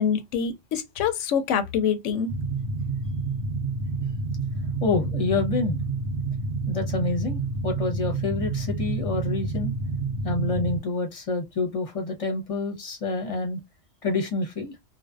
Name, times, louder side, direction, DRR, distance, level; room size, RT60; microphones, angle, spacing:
voice 1, 0.0-2.3, left 7 dB, 80° left, 0.9 m, -25 dB
sound 1, 2.3-10.8, right 3 dB, 75° right, 0.9 m, -29 dB
voice 2, 4.8-5.8 6.7-9.7 10.2-13.6 14.0-14.7, left 3 dB, 30° left, 0.8 m, -27 dB
2.5 x 2.2 x 2.3 m
omnidirectional pair, 1.3 m